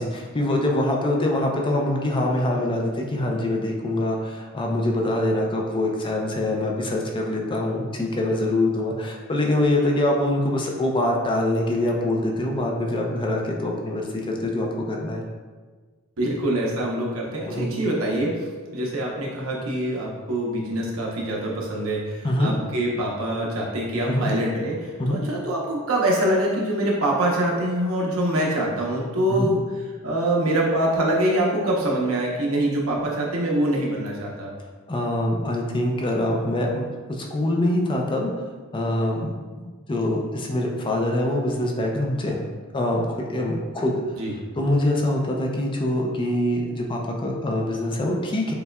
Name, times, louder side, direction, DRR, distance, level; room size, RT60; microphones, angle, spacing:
voice 1, 0.0-15.2 17.5-17.7 22.2-22.6 24.1-24.3 25.0-25.2 29.3-29.5 34.9-38.3 38.7-39.3 39.5-42.4 42.7-44.0 44.6-48.5, left 1 dB, 25° left, 0 dB, 0.4 m, -24 dB
voice 2, 16.2-18.4 18.7-29.6 30.0-34.5 44.1-44.3, right 1 dB, 80° right, -3 dB, 0.9 m, -24 dB
6.8 x 2.3 x 2.3 m, 1.4 s
head